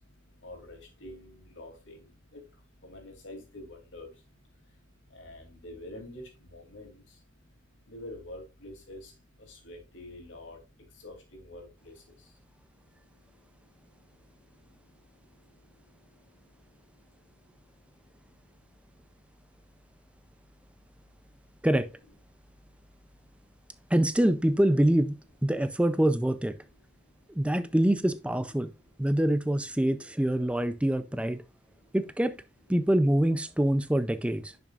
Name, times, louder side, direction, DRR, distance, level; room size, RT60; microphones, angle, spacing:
voice 1, 0.0-21.7 22.3-23.9 26.8-27.5 28.6-28.7 31.5-32.0, left 1 dB, 85° left, 2.8 m, -50 dB
voice 2, 23.9-25.1 25.4-26.5 27.4-28.7 29.0-31.4 31.9-32.3 32.7-34.5, right 1 dB, 5° right, 0.4 m, -25 dB
10.5 x 6.0 x 2.4 m
head